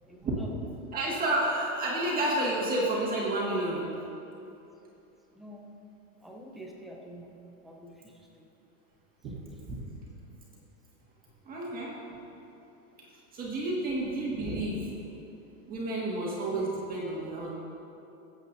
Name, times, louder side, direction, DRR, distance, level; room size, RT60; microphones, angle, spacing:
voice 1, 0.1-0.5 5.3-5.6 6.2-7.4 7.6-8.1 8.4-8.5, right 1 dB, ahead, -2 dB, 0.6 m, -47 dB
voice 2, 0.9-3.9 9.2-9.4 9.7-9.8 11.5-12.0 13.3-14.9 15.7-17.5, right 1 dB, 20° right, -5 dB, 1.9 m, -30 dB
22.0 x 8.0 x 2.7 m, 2.8 s
supercardioid pair, 155°, 44 cm